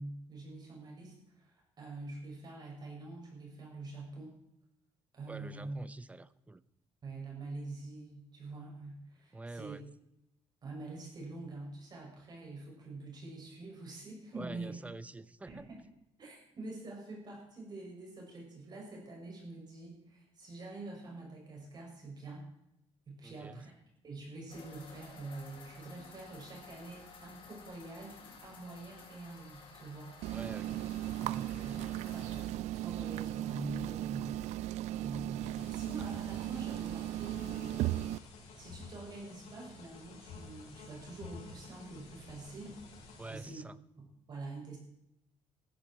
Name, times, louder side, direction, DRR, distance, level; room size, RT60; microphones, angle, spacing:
voice 1, 0.0-4.3 5.1-5.8 7.0-9.8 10.6-14.7 15.5-15.8 16.2-22.5 23.1-23.7 24.0-28.2 28.4-30.1 30.7-30.8 31.2-34.4 34.9-37.9 38.4-42.8 43.3-43.6 44.0-44.8, right 2 dB, 40° right, -2 dB, 6.5 m, -46 dB
voice 2, 5.3-6.6 9.3-9.8 14.3-15.7 23.2-23.6 30.3-30.8 31.4-32.2 43.2-43.8, right 2 dB, 10° right, 16 dB, 0.7 m, -47 dB
sound 1, 24.5-32.5, left 5 dB, 50° left, 4.2 m, -54 dB
sound 2, 30.2-38.2, right 14 dB, 80° right, 0.4 m, -36 dB
sound 3, 35.5-43.4, left 4 dB, 80° left, 5.1 m, -51 dB
15.0 x 14.0 x 4.5 m, 0.82 s
cardioid pair, 130°, 11 cm